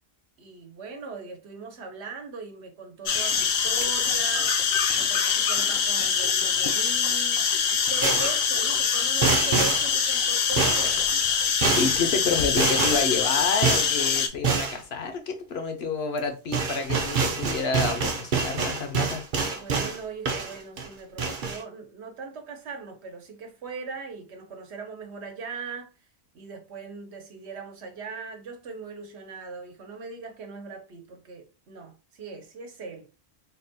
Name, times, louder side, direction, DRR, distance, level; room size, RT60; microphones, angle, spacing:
voice 1, 0.4-4.6 4.9-7.4 7.9-11.1 19.5-25.9 26.3-33.1, right 4 dB, 85° right, 1.1 m, -39 dB
sound 1, 3.1-14.3, left 7 dB, 55° left, 0.6 m, -24 dB
sound 2, 8.0-8.4 9.2-9.9 10.6-11.0 11.6-12.0 12.6-13.1 13.6-13.9 14.4-14.8 16.2-16.3 16.5-20.0 20.3-20.9 21.2-21.6, right 5 dB, 55° right, 0.7 m, -26 dB
voice 2, 11.8-19.2, left 4 dB, 75° left, 1.0 m, -29 dB
3.8 x 2.2 x 2.7 m
omnidirectional pair, 1.1 m